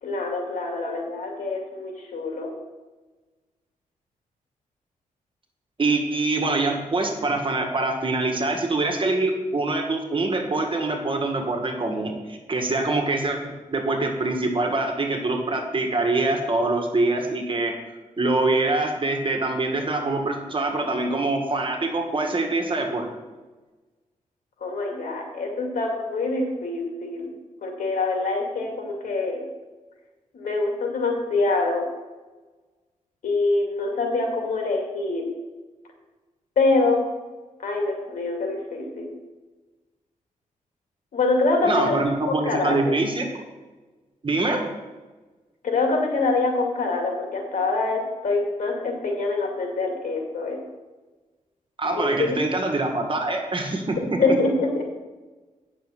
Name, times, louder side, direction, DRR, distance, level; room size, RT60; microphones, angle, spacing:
voice 1, 0.0-2.5 24.6-27.3 27.6-29.4 30.3-31.9 33.2-35.2 36.6-37.0 37.6-39.1 41.1-42.0 42.3-42.9 45.6-50.6 51.9-52.4 54.2-54.8, left 3 dB, 85° left, 1 dB, 2.4 m, -25 dB
voice 2, 5.8-17.7 18.2-23.1 41.6-43.4 44.2-44.6 51.8-54.2, right 2 dB, 40° right, 3 dB, 1.8 m, -24 dB
9.2 x 6.5 x 6.4 m, 1.2 s
cardioid pair, 85°, 14 cm